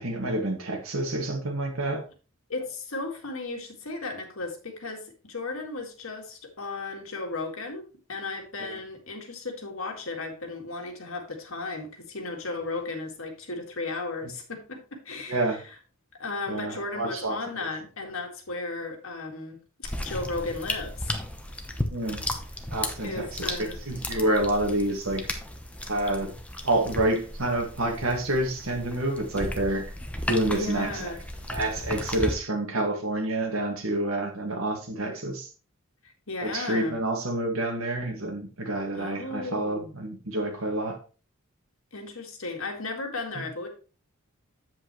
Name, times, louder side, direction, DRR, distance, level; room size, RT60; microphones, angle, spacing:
voice 1, 0.0-2.0 8.6-8.7 15.3-15.6 16.5-17.7 21.9-22.2 22.7-23.6 23.9-25.2 25.9-26.3 26.6-29.9 30.3-31.1 31.5-35.5 36.4-41.0 43.4-43.5, right 1 dB, 75° right, 1.9 m, -28 dB
voice 2, 2.5-15.6 16.2-21.2 23.0-23.8 30.5-31.2 36.3-37.0 38.9-39.9 41.9-43.7, left 3 dB, 70° left, 2.0 m, -35 dB
sound 1, 19.8-32.3, left 1 dB, 5° left, 0.9 m, -35 dB
7.9 x 7.7 x 3.1 m
head